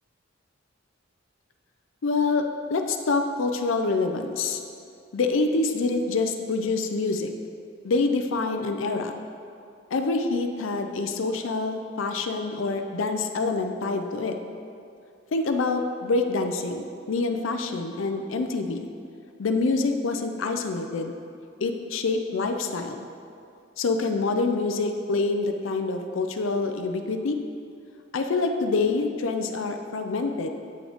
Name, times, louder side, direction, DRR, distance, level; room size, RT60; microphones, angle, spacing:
voice 1, 2.0-4.6 5.1-7.3 7.8-9.1 9.9-14.4 15.3-18.9 19.4-21.1 21.6-23.1 23.8-27.4 28.1-30.5, left 3 dB, 75° left, 6 dB, 0.5 m, -26 dB
8.5 x 6.1 x 3.5 m, 2.4 s
head